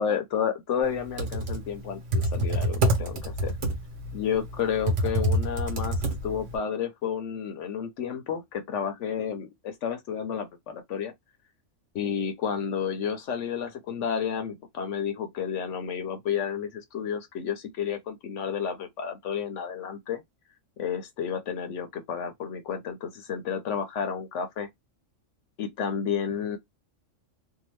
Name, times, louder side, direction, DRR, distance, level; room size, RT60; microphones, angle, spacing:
voice 1, 0.0-3.5 4.1-11.1 11.9-20.2 20.8-24.7 25.6-26.6, left 7 dB, 75° left, 0.9 m, -31 dB
Computer keyboard, 1.0-6.6, right 1 dB, 60° right, 1.1 m, -27 dB
2.7 x 2.2 x 3.0 m
omnidirectional pair, 1.3 m